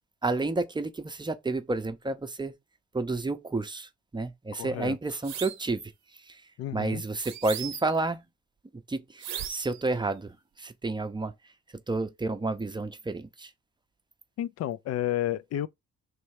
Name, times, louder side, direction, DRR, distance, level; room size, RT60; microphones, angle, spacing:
voice 1, 0.2-2.5 2.9-5.8 6.3-6.4 6.7-8.2 8.9-11.3 11.9-13.5, right 3 dB, 15° right, 0.6 m, -30 dB
voice 2, 4.5-5.0 6.6-7.0 14.4-15.7, left 12 dB, 55° left, 0.4 m, -31 dB
sound 1, 5.2-5.7 7.2-8.0 9.2-9.8, right 9 dB, 60° right, 0.7 m, -37 dB
3.2 x 3.2 x 4.7 m
cardioid pair, 90°, 30 cm